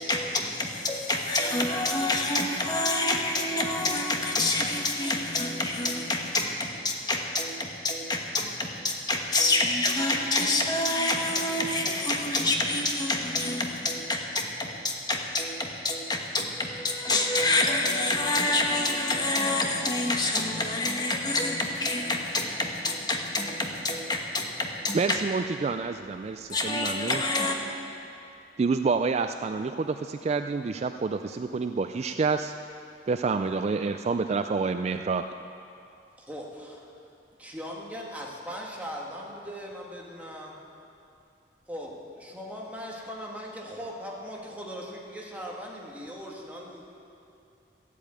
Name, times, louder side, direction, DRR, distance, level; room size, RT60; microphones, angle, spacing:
voice 1, 0.0-25.2 26.5-27.6, left 2 dB, 25° left, 1 dB, 1.3 m, -27 dB
voice 2, 24.9-27.2 28.6-32.5 33.1-35.2, right 4 dB, 40° right, 8 dB, 0.3 m, -28 dB
voice 3, 36.2-36.9 37.4-40.6 41.7-46.8, equal, 10° right, -2 dB, 1.8 m, -39 dB
13.5 x 8.4 x 8.8 m, 2.7 s
head